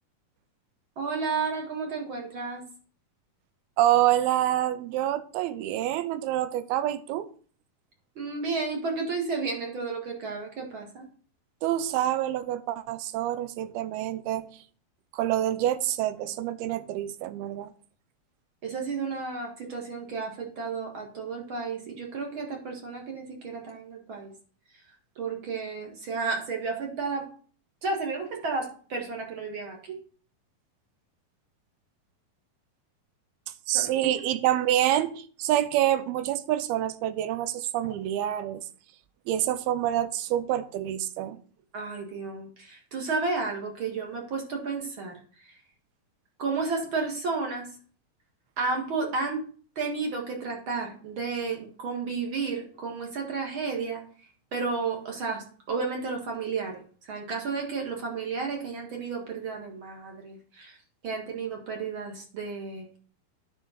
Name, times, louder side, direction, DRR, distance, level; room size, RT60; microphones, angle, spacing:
voice 1, 1.0-2.6 8.2-11.1 18.6-24.3 25.2-27.2 27.8-30.0 33.7-34.1 41.7-45.5 46.4-47.7 48.6-49.4 49.8-54.0 54.5-60.8 61.0-63.0, right 4 dB, 45° right, 2.0 m, -32 dB
voice 2, 3.8-7.3 11.6-14.5 15.1-17.7 33.7-38.7 39.3-41.4, right 12 dB, 90° right, 2.6 m, -27 dB
9.3 x 5.5 x 5.3 m
omnidirectional pair, 4.3 m